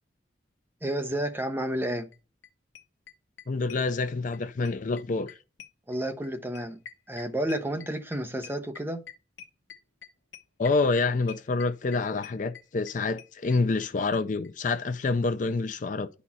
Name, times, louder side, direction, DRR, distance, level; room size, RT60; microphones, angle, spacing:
voice 1, 0.8-2.1 5.9-6.8 7.1-9.0, right 1 dB, 10° right, 0.8 m, -31 dB
sound 1, 2.1-2.2 2.4-2.5 2.7-4.4 4.6-13.9 14.1-14.2 14.4-14.5 14.8-14.9, left 9 dB, 85° left, 0.9 m, -47 dB
voice 2, 3.5-5.4 10.6-16.1, left 3 dB, 45° left, 0.4 m, -27 dB
10.5 x 4.2 x 5.8 m
head